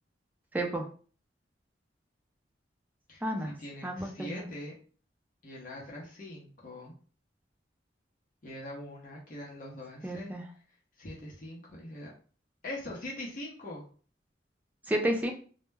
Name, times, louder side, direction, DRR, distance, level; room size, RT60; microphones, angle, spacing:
voice 1, 0.5-0.9 3.2-3.5 3.8-4.5 10.0-10.4 14.9-15.3, right 1 dB, 10° right, 2 dB, 0.3 m, -31 dB
voice 2, 3.1-4.7 5.4-6.9 8.4-10.3 11.0-12.1 12.6-13.8, left 1 dB, 45° left, -3 dB, 0.6 m, -42 dB
2.1 x 2.0 x 3.2 m, 0.41 s
head